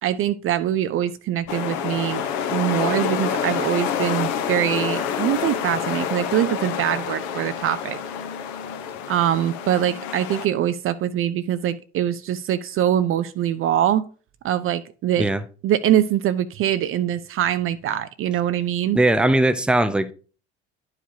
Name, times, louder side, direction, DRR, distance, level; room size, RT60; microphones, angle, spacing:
voice 1, 0.0-2.2 2.5-8.0 9.1-14.0 14.4-15.3 15.6-19.0, right 11 dB, 40° right, 0.5 m, -23 dB
sound 1, 1.5-10.5, left 7 dB, 60° left, 1.0 m, -27 dB
voice 2, 18.9-20.1, right 1 dB, 5° right, 0.6 m, -19 dB
11.0 x 4.8 x 2.8 m
figure-of-eight pair, 55°, 33 cm